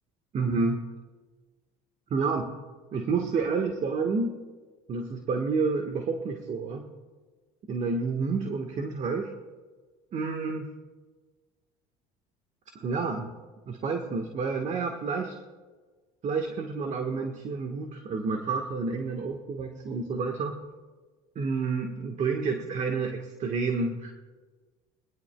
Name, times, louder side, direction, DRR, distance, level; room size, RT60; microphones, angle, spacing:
voice 1, 0.3-0.8 2.1-2.5 2.9-4.4 4.9-6.8 7.7-9.4 10.1-10.7 12.7-13.3 13.7-15.4 16.2-20.6 21.3-24.1, right 4 dB, 45° right, 4 dB, 1.4 m, -29 dB
22.0 x 16.5 x 2.3 m, 1.4 s
supercardioid pair, 90°, 18 cm